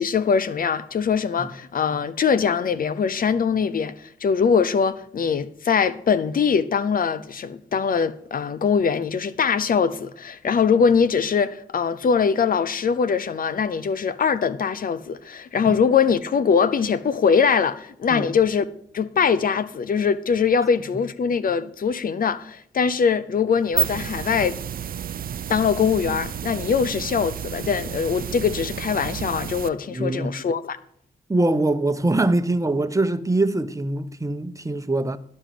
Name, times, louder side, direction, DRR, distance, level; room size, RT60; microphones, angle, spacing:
voice 1, 0.0-18.7 18.9-24.6 25.5-30.8, left 6 dB, 60° left, 0.8 m, -22 dB
sound 1, 23.5-29.7, right 9 dB, 65° right, 0.6 m, -31 dB
voice 2, 29.9-30.4 31.3-35.2, right 2 dB, 20° right, 1.0 m, -23 dB
11.5 x 5.5 x 7.6 m
supercardioid pair, 45°, 16 cm